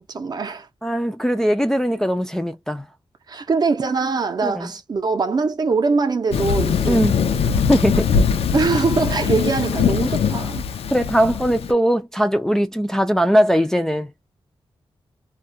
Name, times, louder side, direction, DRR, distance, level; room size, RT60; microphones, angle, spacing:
voice 1, 0.0-0.7 3.3-7.1 8.5-10.6, right 4 dB, 45° right, 0.5 m, -22 dB
voice 2, 0.8-2.9 4.4-4.7 6.9-7.3 7.7-8.1 10.9-14.1, equal, 5° left, 0.3 m, -20 dB
Thunder, 6.3-11.7, left 6 dB, 85° left, 0.4 m, -21 dB
2.3 x 2.1 x 2.6 m
wide cardioid pair, 135°, 10 cm